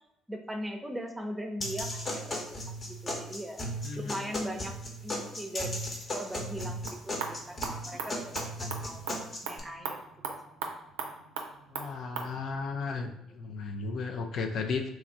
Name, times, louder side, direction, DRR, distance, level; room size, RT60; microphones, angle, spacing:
voice 1, 0.3-3.7 4.0-4.7 5.0-10.4 12.3-12.4 12.9-13.0, equal, 15° right, 5 dB, 0.6 m, -40 dB
sound 1, 1.6-9.6, equal, 40° left, 0.9 m, -36 dB
voice 2, 3.8-4.3 11.7-13.1 13.3-14.9, left 4 dB, 60° left, 5 dB, 0.4 m, -34 dB
sound 2, 6.6-12.3, right 5 dB, 80° right, 0.4 m, -40 dB
3.1 x 2.4 x 3.7 m, 0.87 s
hypercardioid pair, 55°, 0 cm